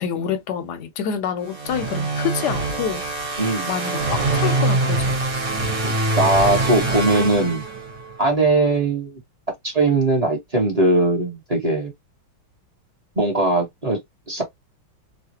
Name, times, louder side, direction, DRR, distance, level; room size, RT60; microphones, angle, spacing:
voice 1, 0.0-5.2, left 8 dB, 70° left, 1.0 m, -27 dB
sound 1, 1.5-8.2, right 2 dB, 50° right, 1.5 m, -24 dB
voice 2, 3.4-3.7 5.8-7.6 8.2-9.2 9.6-11.9 13.2-14.0 14.3-14.4, right 2 dB, 25° right, 1.0 m, -20 dB
3.2 x 2.3 x 2.7 m
omnidirectional pair, 2.1 m